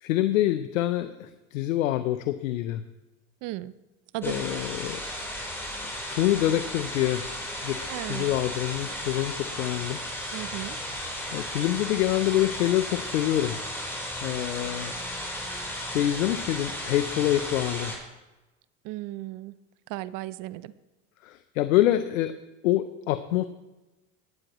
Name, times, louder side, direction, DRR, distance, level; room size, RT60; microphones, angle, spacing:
voice 1, 0.0-2.8 4.2-5.0 6.1-7.2 7.6-10.0 10.9-13.6 14.2-14.9 15.9-17.9 21.2-22.3 22.6-23.4, left 13 dB, 85° left, 11 dB, 0.7 m, -26 dB
voice 2, 3.4-3.7 4.1-4.6 7.9-8.3 10.3-10.8 18.9-19.5 19.9-20.7, right 16 dB, 55° right, 17 dB, 0.7 m, -35 dB
sound 1, 4.2-18.0, left 1 dB, 5° left, 3.9 m, -35 dB
18.5 x 8.8 x 3.0 m, 1.1 s
hypercardioid pair, 90°, 39 cm